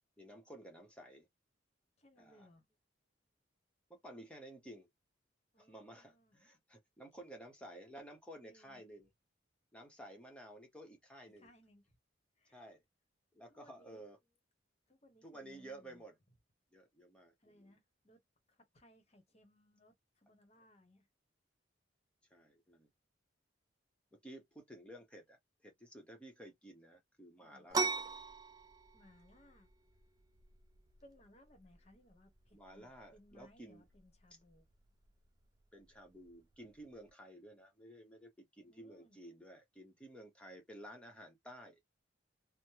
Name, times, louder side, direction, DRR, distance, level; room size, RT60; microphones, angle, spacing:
voice 1, 0.2-1.3 2.2-2.5 3.9-4.9 5.6-9.1 9.7-11.5 12.5-12.8 13.3-14.2 15.2-16.1 16.7-17.7 22.3-22.9 24.1-27.9 32.5-33.9 35.7-41.8, right 1 dB, 5° left, 0.9 m, -54 dB
voice 2, 2.0-2.6 5.5-6.4 8.4-8.8 11.4-12.0 12.4-12.6 13.5-14.1 14.9-16.0 17.4-18.2 18.5-21.1 27.4-27.7 28.9-29.7 31.0-34.7 38.7-39.2, equal, 35° left, 1.0 m, -64 dB
sound 1, 27.7-37.1, right 4 dB, 20° right, 0.3 m, -44 dB
3.1 x 2.1 x 2.8 m
head